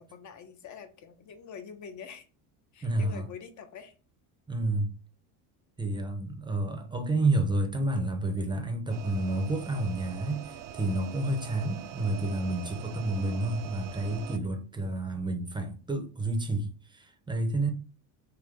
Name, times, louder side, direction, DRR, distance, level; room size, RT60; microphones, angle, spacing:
voice 1, 0.0-2.3 2.7-3.9 13.3-13.6 15.0-15.1, left 7 dB, 40° left, 0.8 m, -46 dB
voice 2, 2.8-3.2 4.5-4.9 5.8-17.7, right 2 dB, 10° right, 0.7 m, -30 dB
sound 1, 8.9-14.4, right 10 dB, 50° right, 0.5 m, -43 dB
3.8 x 2.8 x 3.1 m
supercardioid pair, 100°, 44 cm